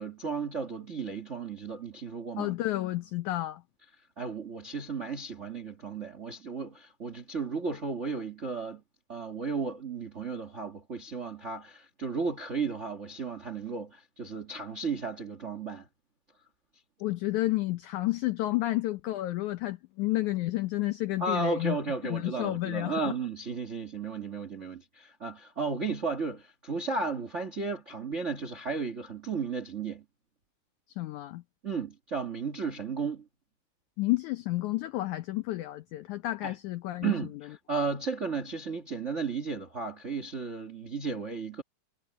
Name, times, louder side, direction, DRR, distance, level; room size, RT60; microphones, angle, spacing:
voice 1, 0.0-2.5 4.2-8.8 9.1-15.9 21.2-30.0 31.6-33.2 36.4-36.5 37.0-41.6, right 4 dB, 90° right, 0.6 m, -34 dB
voice 2, 2.4-3.6 17.0-21.8 22.0-23.1 31.0-31.4 34.0-37.1, left 17 dB, 85° left, 1.7 m, -30 dB
omnidirectional pair, 4.3 m